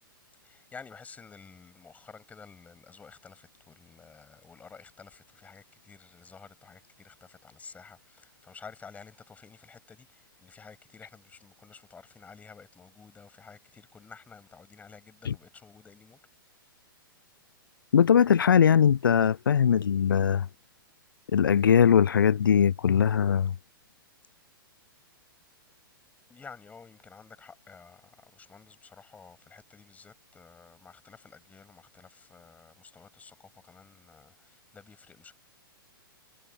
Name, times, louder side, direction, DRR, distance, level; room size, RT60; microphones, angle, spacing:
voice 1, 0.4-16.2 26.3-34.3 34.7-35.3, left 5 dB, 10° left, 6.7 m, -51 dB
voice 2, 17.9-20.5 21.3-23.5, left 8 dB, 70° left, 0.5 m, -21 dB
figure-of-eight pair, 110°, 12 cm